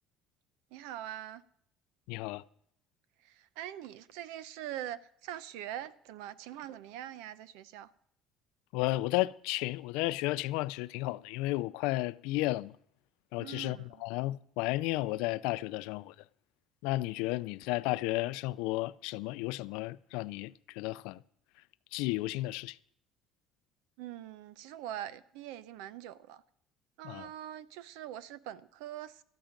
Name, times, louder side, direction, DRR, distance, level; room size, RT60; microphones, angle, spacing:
voice 1, 0.7-1.4 3.2-7.9 13.4-14.0 24.0-26.4 27.0-29.2, right 12 dB, 90° right, 0.6 m, -43 dB
voice 2, 2.1-2.4 8.7-12.7 13.3-16.1 16.8-21.2 21.9-22.8 27.0-27.3, left 19 dB, 85° left, 0.4 m, -33 dB
13.5 x 11.5 x 5.2 m
cardioid pair, 105°, 0 cm